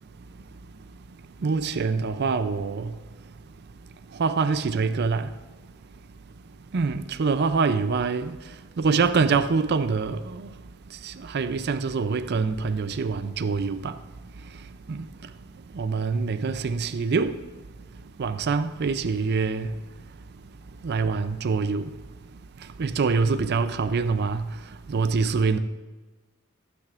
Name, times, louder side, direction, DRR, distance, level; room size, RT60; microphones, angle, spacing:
voice 1, 1.4-2.9 4.2-5.3 6.7-8.3 8.8-10.4 11.0-13.9 14.9-15.0 15.8-17.3 18.2-19.7 20.8-21.9 22.8-24.4 24.9-25.6, right 4 dB, 50° right, 0.4 m, -25 dB
15.0 x 9.4 x 2.5 m
head